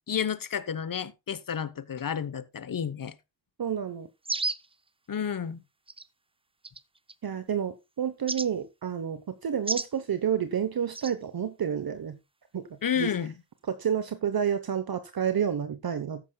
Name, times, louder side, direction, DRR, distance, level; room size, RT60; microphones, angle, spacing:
voice 1, 0.1-3.1 5.1-5.6 12.8-13.3, left 8 dB, 50° left, 1.0 m, -31 dB
voice 2, 3.6-4.1 7.2-12.2 12.5-12.6 13.0-13.1 13.7-16.2, right 8 dB, 55° right, 1.0 m, -29 dB
sound 1, 4.2-4.7 5.9-6.1 6.6-7.1 8.3-8.5 9.7-9.9 10.9-11.1, right 3 dB, 15° right, 0.5 m, -31 dB
13.5 x 10.0 x 2.3 m
cardioid pair, 70°, 43 cm